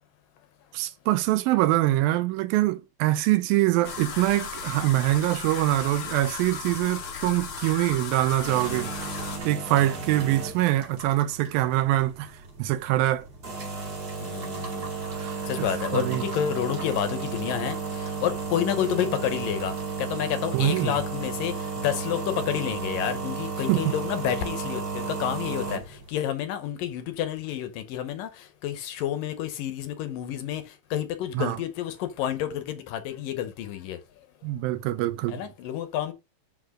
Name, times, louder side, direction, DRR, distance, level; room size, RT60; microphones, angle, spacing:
voice 1, 0.7-8.9 9.5-12.3 12.6-13.2 15.2-15.4 15.9-16.2 20.5-20.9 23.7-23.8 31.3-31.6 34.4-35.4, right 15 dB, 80° right, 2.3 m, -24 dB
sound 1, 3.8-9.4, left 6 dB, 55° left, 1.5 m, -36 dB
sound 2, 6.9-26.1, right 5 dB, 30° right, 2.4 m, -34 dB
voice 2, 9.7-10.2 14.2-14.9 15.5-30.6 30.9-34.0 35.3-36.1, left 10 dB, 75° left, 2.4 m, -30 dB
6.0 x 5.7 x 6.2 m
omnidirectional pair, 4.3 m